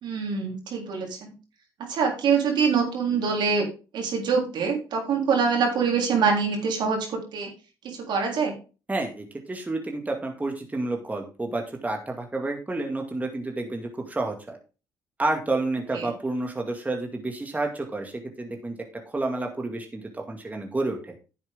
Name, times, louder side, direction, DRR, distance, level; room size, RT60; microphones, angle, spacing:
voice 1, 0.0-1.3 1.9-3.7 3.9-7.5 7.8-8.5 16.0-16.1, right 5 dB, 65° right, 1 dB, 3.8 m, -24 dB
voice 2, 8.9-14.6 15.2-18.8 19.1-21.2, right 2 dB, 20° right, 2 dB, 2.1 m, -30 dB
10.5 x 8.0 x 3.7 m, 0.33 s
supercardioid pair, 60°, 8 cm